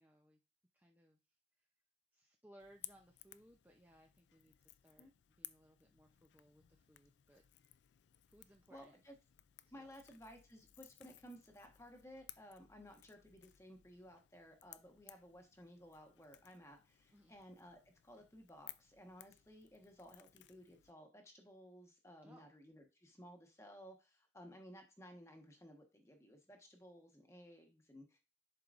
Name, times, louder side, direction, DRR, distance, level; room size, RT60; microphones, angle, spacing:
voice 1, 0.0-0.4 0.7-1.2 2.1-5.1 5.4-7.4 8.3-9.0 9.7-9.9 17.1-17.3 22.2-22.5, equal, 10° right, 1 dB, 0.7 m, -65 dB
Crackle / Crack, 2.6-20.9, left 15 dB, 75° left, 0.4 m, -60 dB
voice 2, 8.7-9.2 9.7-28.2, equal, 15° left, 4 dB, 1.3 m, -57 dB
10.5 x 4.7 x 2.5 m, 0.30 s
head